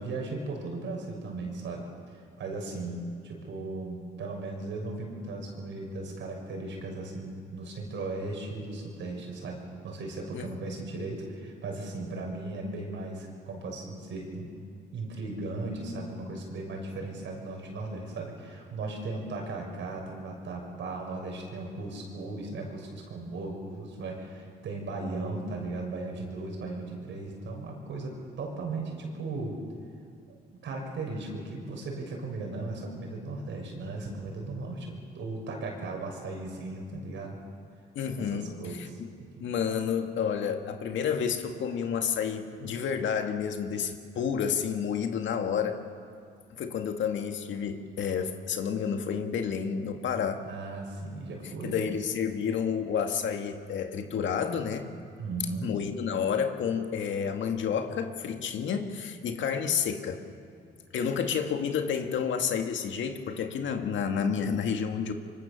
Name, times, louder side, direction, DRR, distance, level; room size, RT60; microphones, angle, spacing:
voice 1, 0.0-14.5 14.9-29.6 30.3-37.4 38.2-39.3 50.4-51.8 55.2-55.7, right 2 dB, 70° right, 1 dB, 6.3 m, -37 dB
voice 2, 10.3-10.8 38.0-39.1 39.4-45.8 46.5-50.4 51.6-54.9 55.6-60.2 60.9-65.1, left 7 dB, 70° left, 5 dB, 2.0 m, -30 dB
25.5 x 24.0 x 7.0 m, 2.2 s
cardioid pair, 90°, 20 cm